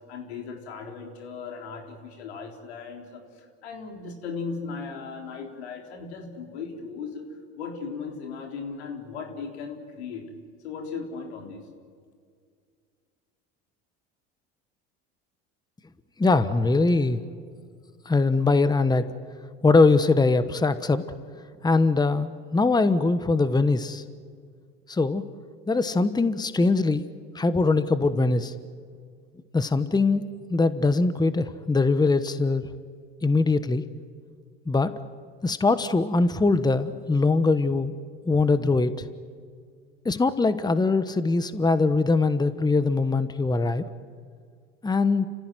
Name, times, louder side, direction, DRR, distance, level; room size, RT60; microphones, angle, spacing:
voice 1, 0.1-10.3 10.6-11.7, left 5 dB, 85° left, 2 dB, 4.0 m, -37 dB
voice 2, 16.2-17.2 18.0-19.1 19.6-21.0 21.6-24.0 24.9-25.2 25.7-27.0 27.3-28.5 29.5-30.2 30.5-32.7 33.2-33.8 34.7-34.9 35.4-37.9 38.2-39.1 40.0-43.8 44.8-45.3, left 3 dB, 15° left, 12 dB, 1.2 m, -22 dB
30.0 x 15.5 x 9.3 m, 2.1 s
hypercardioid pair, 80°, 32 cm